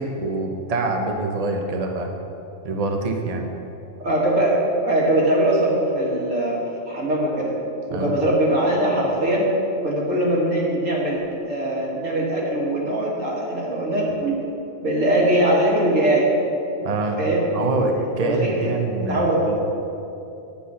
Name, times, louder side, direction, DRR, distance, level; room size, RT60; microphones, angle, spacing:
voice 1, 0.0-2.1 2.6-3.5 7.9-8.1 16.8-17.2 17.5-19.6, right 3 dB, 35° right, 2 dB, 0.9 m, -25 dB
voice 2, 4.0-4.6 4.8-7.5 7.9-9.5 9.8-14.4 14.8-16.3 17.2-17.5 18.2-18.7 19.0-19.6, right 1 dB, 85° right, -4 dB, 2.3 m, -21 dB
8.7 x 8.4 x 5.6 m, 2.8 s
omnidirectional pair, 1.3 m